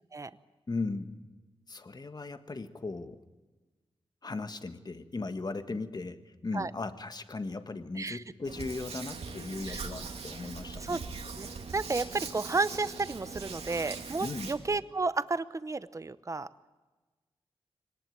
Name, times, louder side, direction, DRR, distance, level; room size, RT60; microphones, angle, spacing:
voice 1, 0.7-1.3 1.7-3.2 4.2-11.0 14.2-14.5, left 3 dB, 40° left, 9 dB, 1.5 m, -37 dB
Hands, 8.4-14.5, right 4 dB, 80° right, 2.5 m, -41 dB
voice 2, 11.4-16.5, right 3 dB, 30° right, 15 dB, 0.8 m, -32 dB
24.0 x 18.5 x 9.2 m, 1.2 s
wide cardioid pair, 80°, 10 cm